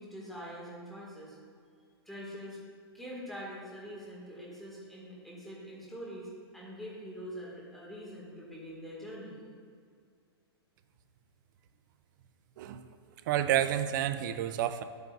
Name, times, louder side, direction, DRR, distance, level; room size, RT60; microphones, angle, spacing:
voice 1, 0.0-1.4 2.1-2.6 2.9-9.4, equal, ahead, -6 dB, 2.1 m, -44 dB
voice 2, 13.3-14.8, right 11 dB, 45° right, 11 dB, 0.5 m, -29 dB
10.5 x 8.1 x 2.6 m, 2.2 s
hypercardioid pair, 145°, 14 cm